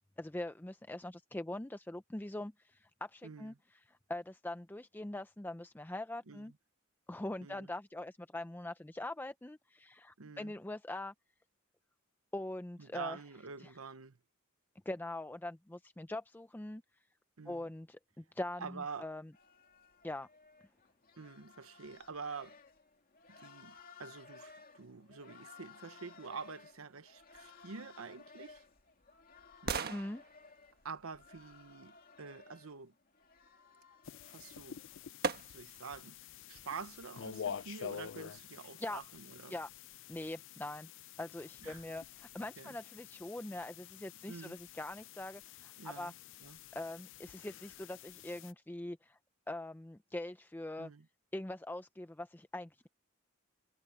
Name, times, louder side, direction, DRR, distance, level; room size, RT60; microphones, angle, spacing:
voice 1, 0.2-3.5 3.9-6.5 7.1-11.1 12.3-13.2 13.6-13.7 14.9-16.8 17.5-19.3 20.0-20.3 29.9-30.2 38.8-39.0 39.5-39.7 40.1-40.9 41.2-46.1 46.7-49.2 49.5-50.9 51.3-52.9, left 1 dB, 10° left, 0.5 m, -42 dB
voice 2, 3.2-3.6 6.3-6.5 7.4-7.7 10.2-10.5 12.8-14.2 17.4-17.7 18.6-19.1 21.2-22.6 23.3-28.6 29.6-30.0 30.8-32.9 34.2-34.8 35.4-36.2 36.5-39.6 41.6-41.8 42.6-42.8 44.3-44.6 45.8-46.1 46.4-46.6 50.8-51.1, right 5 dB, 80° right, 0.9 m, -47 dB
sound 1, 19.3-35.1, left 5 dB, 45° left, 2.5 m, -58 dB
sound 2, 28.2-32.2 34.3-34.4 35.2-35.9 36.4-36.5, right 4 dB, 45° right, 1.4 m, -42 dB
sound 3, 34.0-48.5, left 8 dB, 65° left, 0.5 m, -49 dB
head